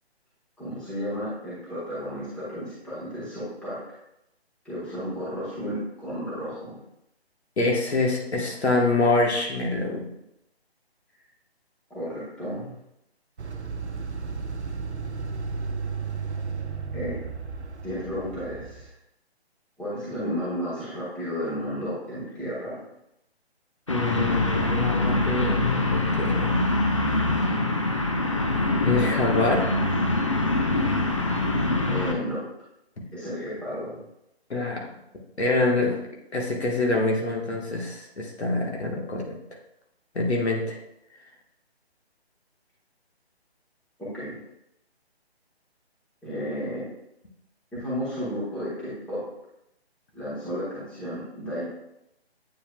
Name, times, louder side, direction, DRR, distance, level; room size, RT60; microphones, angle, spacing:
voice 1, 0.6-3.8 4.6-6.8 11.9-12.7 16.9-17.2 17.8-18.9 19.8-22.8 31.9-32.4 33.1-34.0 44.0-44.4 46.2-46.9 47.8-49.2 50.1-51.7, equal, 5° left, -10 dB, 1.3 m, -32 dB
voice 2, 7.6-10.0 23.9-26.5 27.0-27.4 28.8-29.6 34.5-34.9 35.4-36.0 36.3-39.3 40.2-40.8, left 2 dB, 75° left, -1 dB, 1.6 m, -25 dB
sound 1, 13.4-18.9, right 5 dB, 90° right, 0.8 m, -33 dB
sound 2, 23.9-32.1, left 2 dB, 30° left, 0.4 m, -24 dB
8.5 x 4.7 x 2.4 m, 0.83 s
figure-of-eight pair, 150°, 33 cm